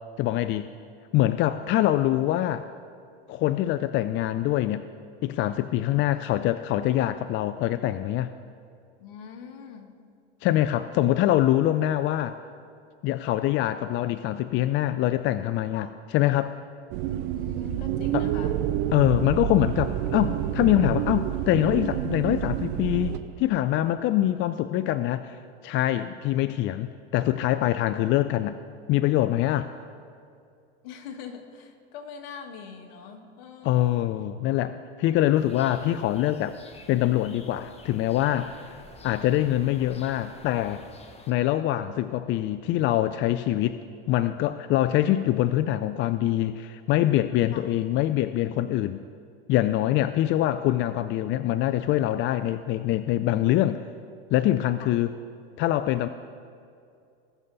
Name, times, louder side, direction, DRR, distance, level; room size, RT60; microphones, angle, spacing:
voice 1, 0.2-0.7 1.1-2.7 3.3-4.8 5.2-8.3 10.4-12.4 13.0-16.6 18.1-18.3 18.9-25.4 25.6-28.6 28.9-29.7 33.6-36.6 36.9-40.8 41.3-43.8 44.1-49.0 49.5-53.8 54.3-55.1 55.6-56.1, left 13 dB, 40° left, 12 dB, 0.4 m, -24 dB
voice 2, 9.0-9.9 15.7-16.0 17.3-18.6 30.8-34.0 47.5-47.6 54.8-55.0, left 6 dB, 65° left, 4 dB, 1.7 m, -43 dB
sound 1, 16.9-23.2, right 11 dB, 60° right, 0.8 m, -28 dB
sound 2, 35.3-41.3, left 2 dB, 20° left, 1.1 m, -49 dB
20.5 x 6.8 x 4.0 m, 2.4 s
hypercardioid pair, 95°, 31 cm